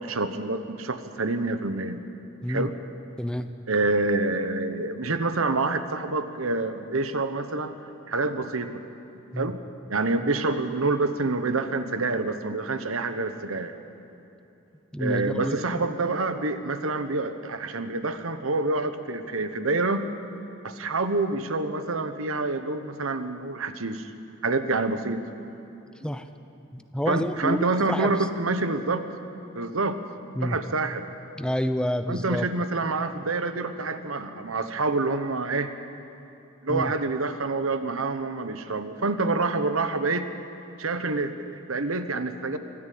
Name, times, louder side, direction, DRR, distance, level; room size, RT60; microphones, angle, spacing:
voice 1, 0.0-2.0 2.5-2.7 3.7-7.7 8.1-8.8 9.4-9.6 9.9-13.7 15.0-20.1 20.6-24.1 24.4-25.3 27.1-29.1 29.5-30.0 30.4-31.1 32.1-35.7 36.6-40.3 40.8-42.6, right 3 dB, 85° right, 9 dB, 1.2 m, -27 dB
voice 2, 3.2-3.5 9.3-9.5 14.9-15.8 26.0-26.3 26.7-28.1 30.4-30.6 31.4-32.5 36.7-36.9, equal, 5° left, 9 dB, 0.7 m, -29 dB
24.0 x 13.5 x 8.6 m, 2.8 s
head